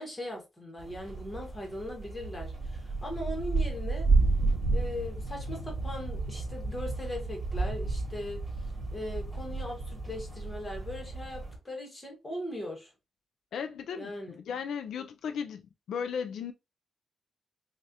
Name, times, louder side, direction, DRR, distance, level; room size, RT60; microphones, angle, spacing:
voice 1, 0.0-4.1 4.7-8.4 8.9-12.9 14.0-14.4, left 1 dB, 15° left, 1.3 m, -39 dB
sound 1, 0.8-11.6, right 3 dB, 5° right, 2.4 m, -31 dB
voice 2, 13.5-15.6 15.9-16.5, left 7 dB, 85° left, 0.4 m, -35 dB
6.3 x 2.4 x 2.8 m
wide cardioid pair, 170°, 0 cm